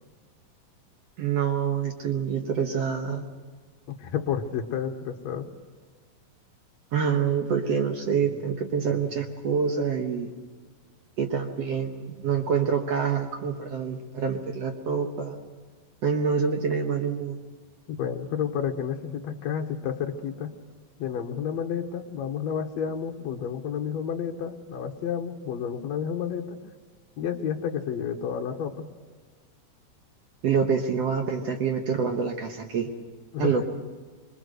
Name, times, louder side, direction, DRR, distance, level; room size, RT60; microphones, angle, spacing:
voice 1, 1.2-3.3 6.9-10.3 11.2-15.4 16.0-17.4 30.4-32.9 33.4-33.6, right 6 dB, 60° right, 4 dB, 1.8 m, -26 dB
voice 2, 3.9-5.5 17.9-20.5 21.0-26.6 27.2-28.9 33.3-33.6, left 8 dB, 60° left, 2 dB, 2.0 m, -30 dB
26.0 x 22.0 x 6.6 m, 1.5 s
omnidirectional pair, 4.1 m